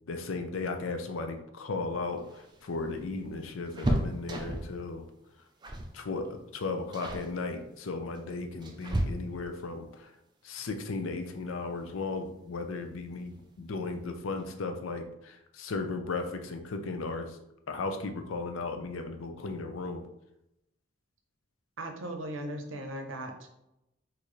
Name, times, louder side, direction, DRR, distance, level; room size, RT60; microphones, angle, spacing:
voice 1, 0.1-5.1 5.9-10.1 10.4-17.4 17.7-20.0, left 3 dB, 80° left, 6 dB, 0.5 m, -36 dB
sound 1, 2.1-4.8 5.6-6.0 6.2-6.5 6.9-7.3 8.1-9.6 11.3-11.4 11.8-11.9 13.1-13.5 13.8-13.9 14.2-14.4, right 1 dB, 20° right, 0.3 m, -34 dB
voice 2, 21.8-23.5, right 1 dB, 75° right, 4 dB, 0.7 m, -38 dB
4.0 x 2.6 x 3.1 m, 0.85 s
head